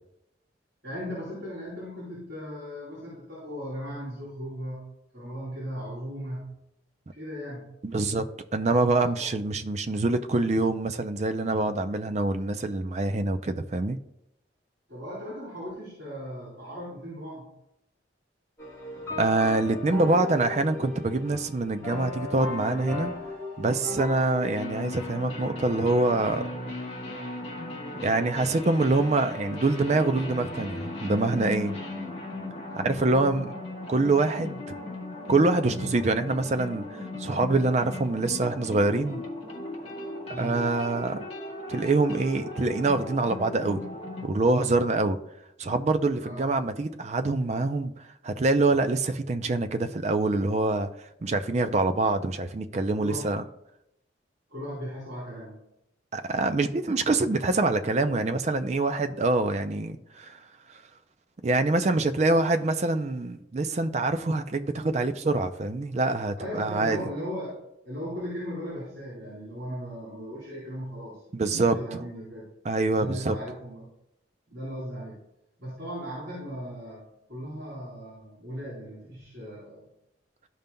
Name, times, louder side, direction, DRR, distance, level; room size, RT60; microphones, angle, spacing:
voice 1, 0.8-6.6 7.1-7.7 9.0-9.3 14.9-17.5 33.0-33.4 40.3-40.7 46.2-46.5 53.0-53.4 54.5-55.6 62.2-62.4 66.4-67.6 67.8-72.5 72.9-73.9 74.5-75.2 75.6-77.0 77.3-79.9, equal, 65° right, 2.8 m, -37 dB
voice 2, 7.8-8.2 8.5-14.0 19.2-23.1 23.6-26.5 28.0-31.7 32.8-33.5 33.9-34.7 35.3-39.2 40.4-41.3 41.7-43.8 44.2-45.2 45.6-47.9 48.2-50.9 51.2-53.4 56.1-60.4 61.4-67.0 71.3-72.0 72.6-73.4, right 2 dB, 35° right, 0.4 m, -25 dB
sound 1, 18.6-24.6, left 2 dB, 15° left, 2.4 m, -36 dB
sound 2, 24.5-44.3, left 1 dB, 30° left, 1.3 m, -37 dB
13.0 x 5.3 x 2.2 m
head